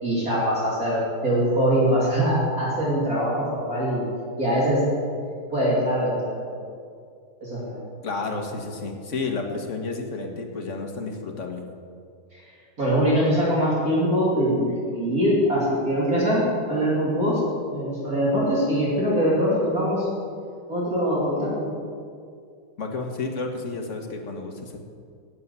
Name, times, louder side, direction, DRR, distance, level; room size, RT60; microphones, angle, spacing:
voice 1, 0.0-4.1 4.4-4.8 5.5-6.4 7.4-7.8 12.3-12.4 12.8-17.4 17.7-20.1 20.7-21.7, equal, 40° right, -7 dB, 3.1 m, -23 dB
voice 2, 8.0-11.6 22.8-24.8, left 3 dB, 40° left, 2 dB, 1.5 m, -31 dB
11.5 x 8.6 x 8.2 m, 2.2 s
omnidirectional pair, 2.4 m